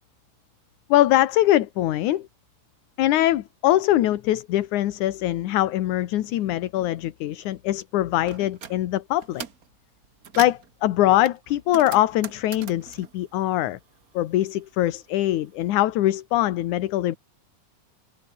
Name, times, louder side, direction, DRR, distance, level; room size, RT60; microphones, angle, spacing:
voice 1, 0.9-2.3 3.0-9.4 10.4-13.8 14.1-17.2, left 14 dB, 70° left, 2.4 m, -22 dB
sound 1, 8.3-8.8 9.2-9.7 10.0-10.7 11.2-14.2 14.4-15.6, right 7 dB, 65° right, 0.8 m, -40 dB
omnidirectional pair, 3.9 m